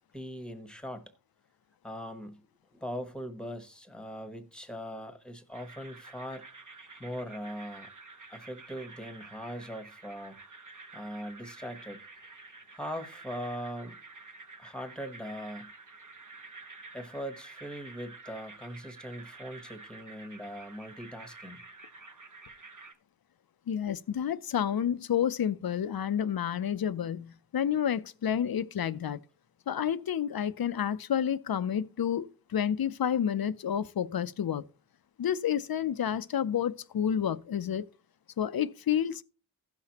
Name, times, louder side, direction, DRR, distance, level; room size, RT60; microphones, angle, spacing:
voice 1, 0.1-1.0 1.8-2.5 2.7-6.4 7.0-7.9 8.3-10.4 10.9-12.0 12.7-14.0 14.6-15.7 16.9-21.6, equal, ahead, 1.1 m, -40 dB
sound 1, 5.5-22.9, right 3 dB, 45° right, 1.0 m, -50 dB
voice 2, 23.7-29.2 29.7-34.7 35.2-37.8 38.4-39.2, left 9 dB, 60° left, 0.5 m, -30 dB
16.5 x 5.8 x 2.9 m
wide cardioid pair, 80°, 41 cm